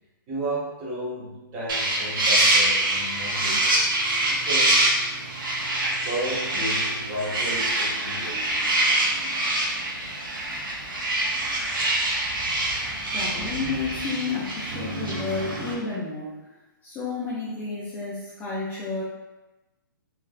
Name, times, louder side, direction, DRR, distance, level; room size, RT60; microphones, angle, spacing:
voice 1, 0.3-3.8 4.3-4.9 6.0-8.5, right 1 dB, 30° right, -6 dB, 0.9 m, -33 dB
sound 1, 1.7-15.7, right 1 dB, 70° right, 0.8 m, -25 dB
voice 2, 13.0-16.4 16.8-19.0, left 4 dB, 15° left, -8 dB, 0.4 m, -31 dB
3.0 x 2.4 x 2.4 m, 1.0 s
hypercardioid pair, 150°, 12 cm